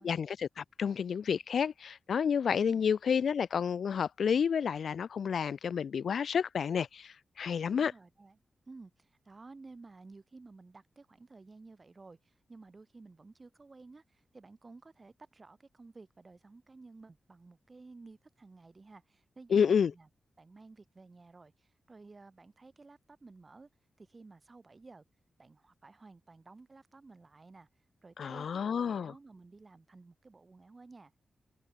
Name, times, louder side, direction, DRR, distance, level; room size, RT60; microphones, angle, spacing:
voice 1, 0.0-7.9 19.5-19.9 28.2-29.1, left 7 dB, 75° left, 0.6 m, -30 dB
voice 2, 7.6-8.4 8.7-20.1 20.4-23.7 24.0-25.0 25.4-27.7 28.0-31.2, right 3 dB, 35° right, 7.9 m, -54 dB
open air
cardioid pair, 65°, 0 cm